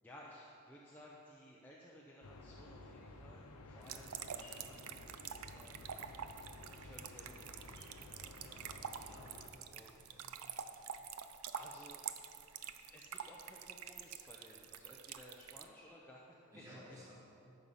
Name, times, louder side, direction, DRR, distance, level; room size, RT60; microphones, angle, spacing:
voice 1, 0.0-5.0 5.5-5.9 6.7-7.9 8.2-8.9 9.7-10.0 11.6-12.0 12.9-16.8, left 1 dB, 10° left, -4 dB, 0.6 m, -58 dB
sound 1, 2.2-9.5, left 2 dB, 85° left, 0.8 m, -54 dB
sound 2, 3.8-15.7, right 8 dB, 80° right, 0.5 m, -47 dB
voice 2, 8.4-8.7 9.0-9.7 10.0-10.3 16.5-17.1, equal, 15° right, -6 dB, 1.5 m, -57 dB
13.0 x 5.6 x 5.6 m, 2.7 s
head